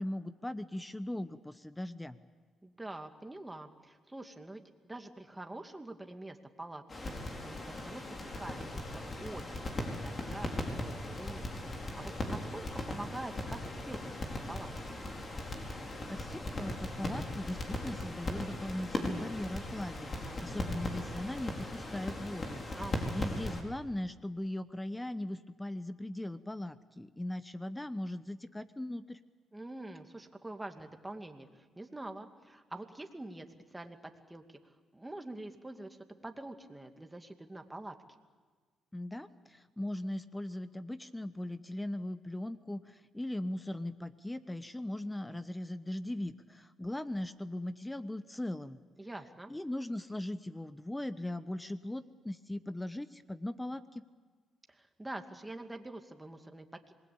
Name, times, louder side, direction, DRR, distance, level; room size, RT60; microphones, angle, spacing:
voice 1, 0.0-2.2 15.7-22.6 23.1-29.2 38.9-48.8 49.5-54.0, left 1 dB, 10° left, 13 dB, 1.0 m, -39 dB
voice 2, 2.6-6.8 7.4-11.5 12.0-14.0 14.5-14.7 22.7-23.4 29.5-33.5 33.7-36.0 36.2-37.9 49.0-49.5 54.7-56.9, right 2 dB, 15° right, 5 dB, 2.5 m, -45 dB
sound 1, 6.9-23.6, left 1 dB, 40° left, 4.9 m, -38 dB
26.5 x 20.5 x 8.8 m, 1.4 s
supercardioid pair, 65°, 0 cm